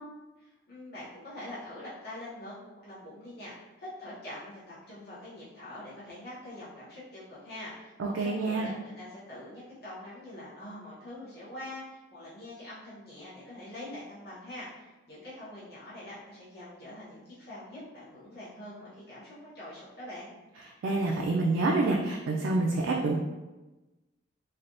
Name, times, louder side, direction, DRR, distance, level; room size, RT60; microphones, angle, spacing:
voice 1, 0.4-20.3, left 1 dB, 55° left, -11 dB, 1.0 m, -44 dB
voice 2, 8.0-8.7 20.8-23.2, right 3 dB, 85° right, -1 dB, 0.3 m, -27 dB
3.3 x 2.3 x 2.5 m, 1.1 s
head